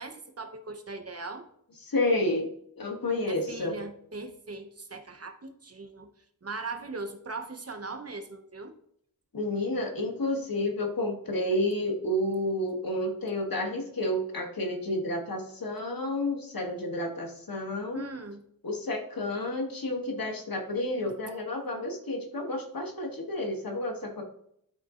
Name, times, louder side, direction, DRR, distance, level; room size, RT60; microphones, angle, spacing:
voice 1, 0.0-1.5 3.3-6.1 6.4-8.7 17.9-18.4, right 3 dB, 45° right, 6 dB, 0.9 m, -39 dB
voice 2, 1.9-2.5 2.8-3.7 9.3-18.1 18.6-24.2, left 1 dB, 80° left, 2 dB, 1.4 m, -30 dB
11.5 x 3.9 x 2.4 m, 0.70 s
wide cardioid pair, 75°, 35 cm